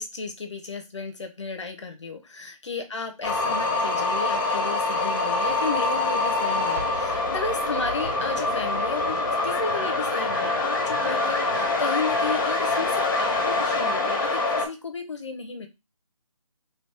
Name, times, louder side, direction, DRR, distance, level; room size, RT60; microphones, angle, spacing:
voice 1, 0.0-15.7, left 4 dB, 55° left, 6 dB, 0.7 m, -34 dB
sound 1, 3.2-14.7, left 3 dB, 40° left, 1.1 m, -25 dB
3.1 x 3.0 x 3.3 m, 0.25 s
figure-of-eight pair, 170°, 18 cm